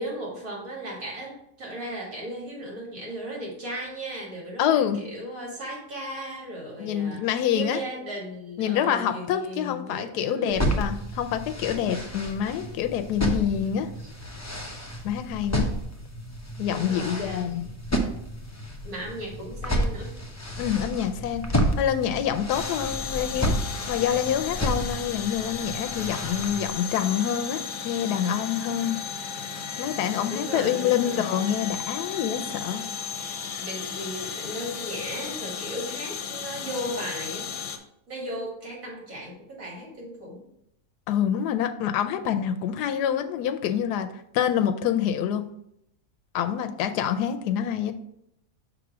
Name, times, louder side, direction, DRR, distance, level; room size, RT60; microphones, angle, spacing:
voice 1, 0.0-7.2 7.5-10.6 12.0-12.1 16.7-17.7 18.8-20.2 30.3-31.3 33.6-37.5 38.1-40.4, right 1 dB, 60° right, -2 dB, 2.5 m, -36 dB
voice 2, 4.6-5.0 6.8-7.8 8.6-13.9 15.0-15.7 16.6-17.7 20.6-21.4 21.8-23.5 23.9-29.0 29.8-32.8 41.1-44.1 44.3-45.4 46.3-47.9, left 9 dB, 85° left, 7 dB, 1.1 m, -26 dB
sound 1, 10.5-26.7, equal, 20° left, 0.4 m, -31 dB
sound 2, 22.5-37.8, left 6 dB, 65° left, 1.1 m, -35 dB
6.0 x 3.5 x 6.0 m, 0.76 s
omnidirectional pair, 1.7 m